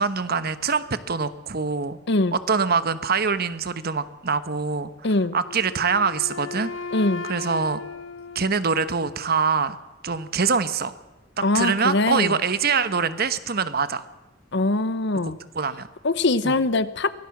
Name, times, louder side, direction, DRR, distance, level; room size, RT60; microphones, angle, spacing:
voice 1, 0.0-2.0 2.3-4.9 5.3-6.7 7.3-7.8 8.3-9.8 10.0-11.0 11.4-14.0 15.5-15.9 16.4-16.6, right 5 dB, 50° right, 13 dB, 1.1 m, -24 dB
voice 2, 2.1-2.4 5.0-5.3 6.9-7.2 11.4-12.3 14.5-15.4 16.0-17.1, left 2 dB, 65° left, 15 dB, 1.0 m, -22 dB
Wind instrument woodwind instrument, 5.4-9.4, left 4 dB, 90° left, 1.2 m, -36 dB
23.5 x 16.5 x 7.3 m, 1.1 s
head